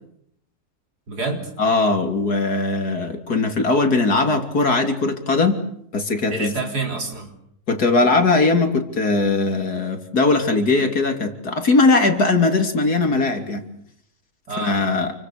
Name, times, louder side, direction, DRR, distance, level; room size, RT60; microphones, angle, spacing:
voice 1, 1.1-1.5 6.3-7.3 14.5-15.0, right 3 dB, 90° right, 3 dB, 4.8 m, -28 dB
voice 2, 1.6-5.6 5.9-6.6 7.7-13.6 14.6-15.1, left 3 dB, 75° left, 5 dB, 3.6 m, -19 dB
29.5 x 24.5 x 6.7 m, 0.71 s
omnidirectional pair, 1.7 m